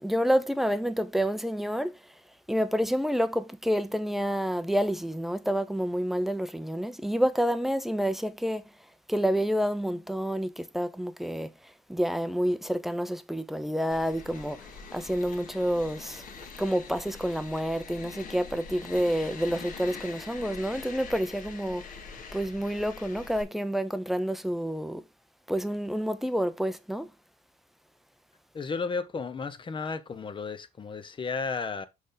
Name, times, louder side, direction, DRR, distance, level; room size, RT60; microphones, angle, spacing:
voice 1, 0.0-2.1 2.5-8.6 9.1-16.2 16.6-22.0 22.3-25.0 25.5-27.1, equal, ahead, 0.8 m, -29 dB
sound 1, 13.9-23.4, left 5 dB, 55° left, 1.8 m, -44 dB
voice 2, 28.5-31.9, left 4 dB, 30° left, 1.0 m, -33 dB
6.3 x 5.1 x 4.0 m
cardioid pair, 110°, 17 cm